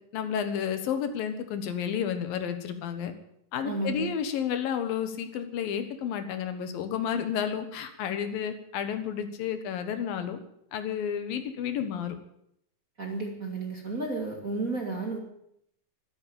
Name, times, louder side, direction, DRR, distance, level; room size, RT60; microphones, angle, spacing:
voice 1, 0.1-3.1 3.5-10.4 10.7-12.2, left 8 dB, 80° left, 9 dB, 3.2 m, -31 dB
voice 2, 3.6-4.1 13.0-15.2, right 3 dB, 30° right, 1 dB, 2.1 m, -32 dB
13.0 x 12.5 x 8.8 m, 0.73 s
omnidirectional pair, 4.1 m